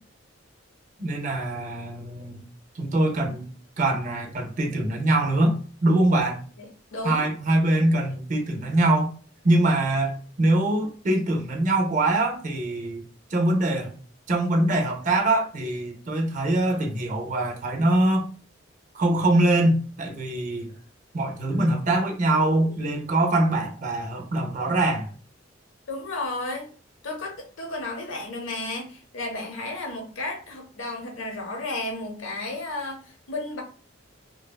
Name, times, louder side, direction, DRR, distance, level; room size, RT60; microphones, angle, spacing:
voice 1, 1.0-2.4 2.7-3.5 3.8-6.4 7.0-9.1 9.4-13.0 13.3-13.9 14.3-18.3 18.9-20.7 21.1-25.1, right 1 dB, 40° right, 0.5 m, -23 dB
voice 2, 6.6-7.3 25.9-26.7 27.0-33.6, left 2 dB, 90° left, 0.7 m, -33 dB
2.6 x 2.1 x 2.2 m
head